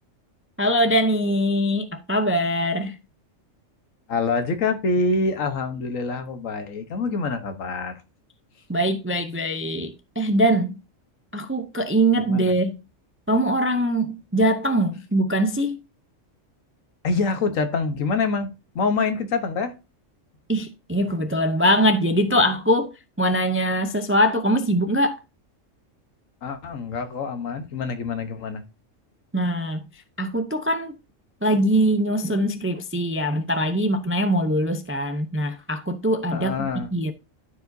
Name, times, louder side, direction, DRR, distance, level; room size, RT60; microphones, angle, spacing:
voice 1, 0.6-3.0 8.7-10.8 11.3-12.8 13.3-15.8 20.5-22.9 23.2-25.2 29.3-29.8 30.2-30.9 31.4-37.1, equal, 20° right, 0.3 m, -22 dB
voice 2, 4.1-8.0 12.3-12.5 17.0-19.7 26.4-28.6 36.3-36.9, left 4 dB, 80° left, 1.5 m, -26 dB
13.0 x 4.8 x 2.7 m
omnidirectional pair, 1.4 m